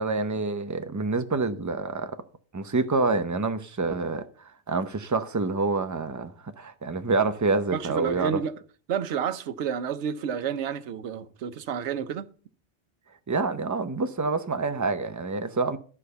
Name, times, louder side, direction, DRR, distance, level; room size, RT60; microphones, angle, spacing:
voice 1, 0.0-2.1 2.5-4.2 4.7-8.4 13.3-15.8, right 3 dB, 20° right, 0.6 m, -27 dB
voice 2, 7.7-8.5 8.9-12.3, right 8 dB, 80° right, 1.0 m, -30 dB
12.0 x 4.9 x 6.8 m
omnidirectional pair, 1.1 m